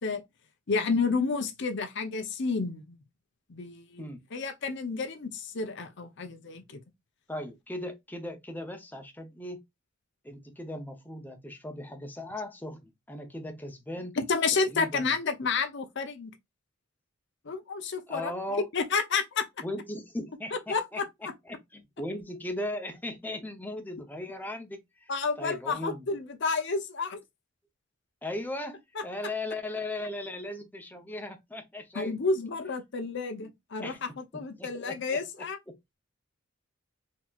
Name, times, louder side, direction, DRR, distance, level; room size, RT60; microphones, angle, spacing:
voice 1, 0.7-3.0 3.5-4.1 4.3-6.8 14.2-16.3 17.5-18.3 18.7-19.4 20.5-21.0 25.1-27.2 31.9-35.6, left 4 dB, 60° left, 0.7 m, -30 dB
voice 2, 7.3-9.6 10.2-14.2 14.5-15.2 18.1-18.7 19.6-25.1 25.4-26.1 28.2-32.2 33.4-33.5 33.8-35.2 35.7-35.8, left 1 dB, 10° left, 0.6 m, -38 dB
4.3 x 2.8 x 2.3 m
head